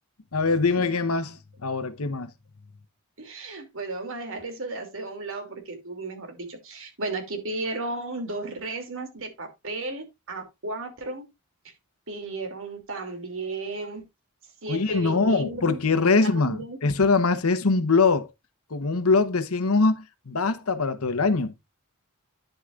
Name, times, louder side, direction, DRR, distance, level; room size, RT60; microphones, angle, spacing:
voice 1, 0.3-1.4 1.6-2.3 14.7-18.3 18.7-21.5, left 4 dB, 75° left, 1.0 m, -23 dB
voice 2, 3.2-11.3 11.6-11.7 12.1-14.1 14.6-15.8 16.0-16.8, right 2 dB, 65° right, 2.7 m, -34 dB
10.5 x 8.0 x 2.5 m
head